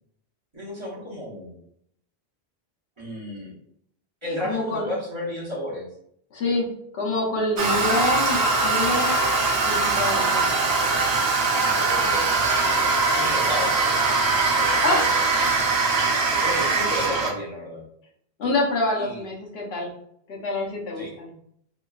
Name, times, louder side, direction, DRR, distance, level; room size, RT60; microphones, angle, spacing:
voice 1, 0.5-1.6 3.0-3.5 4.2-5.9 9.8-10.1 11.5-15.3 16.3-17.8 18.9-19.2 20.9-21.2, equal, 30° right, -7 dB, 0.8 m, -33 dB
voice 2, 4.4-4.9 6.3-6.7 6.9-9.2 9.6-10.4 14.8-15.1 16.6-16.7 18.4-19.9 20.3-21.3, left 2 dB, 80° left, -2 dB, 0.9 m, -26 dB
Toilet flush, 7.6-17.3, right 3 dB, 90° right, 0.9 m, -22 dB
2.8 x 2.2 x 2.3 m, 0.70 s
omnidirectional pair, 1.1 m